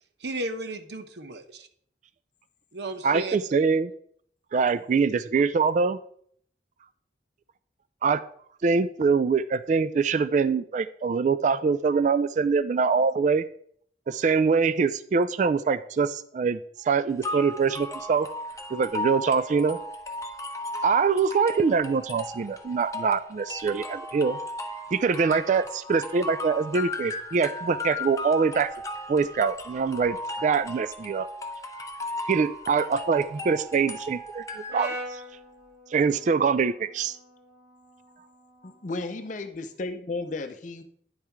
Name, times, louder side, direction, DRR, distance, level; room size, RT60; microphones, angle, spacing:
voice 1, 0.2-1.7 2.7-3.4, right 2 dB, 70° right, 8 dB, 0.9 m, -34 dB
voice 2, 3.0-3.9 4.5-6.0 8.0-8.2 8.6-13.4 14.1-18.3 18.7-19.8 20.8-24.4 24.9-28.7 29.1-31.3 32.3-35.2 35.9-37.2, right 5 dB, 45° right, 14 dB, 0.3 m, -24 dB
sound 1, 17.2-35.2, left 1 dB, 20° left, 0.8 m, -36 dB
Brass instrument, 34.7-38.9, equal, 90° right, 2.8 m, -42 dB
voice 3, 38.6-40.8, left 3 dB, 45° left, 7 dB, 0.6 m, -34 dB
9.9 x 5.6 x 4.5 m, 0.63 s
head